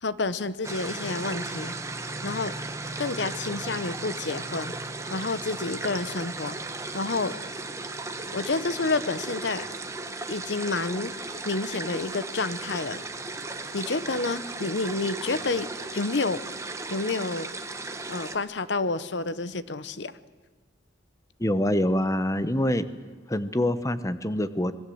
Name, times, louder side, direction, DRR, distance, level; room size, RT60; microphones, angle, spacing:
voice 1, 0.0-1.7 2.2-2.5 3.0-4.7 5.1-6.6 6.9-7.4 8.3-9.7 10.3-11.1 11.5-13.0 13.7-16.4 16.9-17.5 18.1-20.1, left 3 dB, 65° left, 15 dB, 0.9 m, -29 dB
sound 1, 0.6-18.4, right 3 dB, 15° right, 1.3 m, -36 dB
voice 2, 21.4-22.8 23.3-24.7, left 1 dB, 15° left, 13 dB, 0.9 m, -25 dB
26.0 x 20.5 x 7.8 m, 1.4 s
head